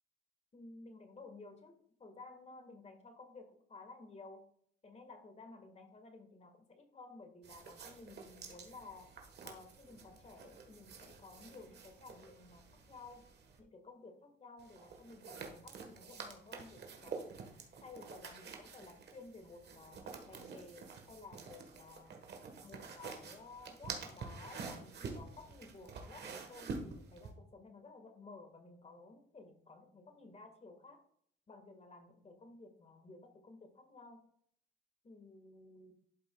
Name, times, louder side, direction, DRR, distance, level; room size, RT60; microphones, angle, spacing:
voice 1, 0.5-4.4 4.8-9.1 9.4-13.2 13.6-17.3 17.8-22.2 22.6-31.0 31.5-34.2 35.0-35.9, left 3 dB, 35° left, 6 dB, 1.7 m, -55 dB
sound 1, 7.4-13.6 14.6-27.3, right 4 dB, 55° right, 1.4 m, -49 dB
12.0 x 5.4 x 2.3 m, 0.64 s
cardioid pair, 90°, 20 cm